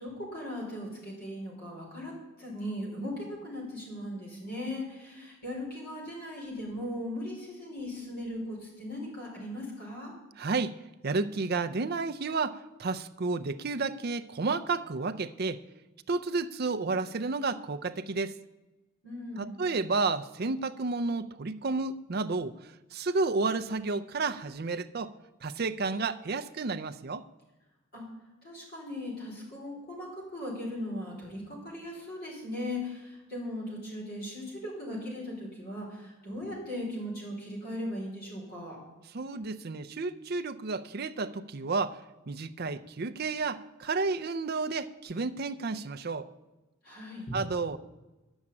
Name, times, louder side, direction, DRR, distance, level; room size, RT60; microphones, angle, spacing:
voice 1, 0.0-10.1 19.0-19.6 27.9-28.1 28.4-38.8 46.8-47.4, left 1 dB, 45° left, -3 dB, 5.0 m, -38 dB
voice 2, 10.4-10.7 11.0-15.6 16.1-18.3 19.4-22.5 22.9-25.1 25.4-27.2 39.1-42.0 42.3-46.3 47.3-47.8, right 3 dB, 45° right, 11 dB, 0.5 m, -31 dB
11.0 x 7.2 x 8.6 m, 1.1 s
head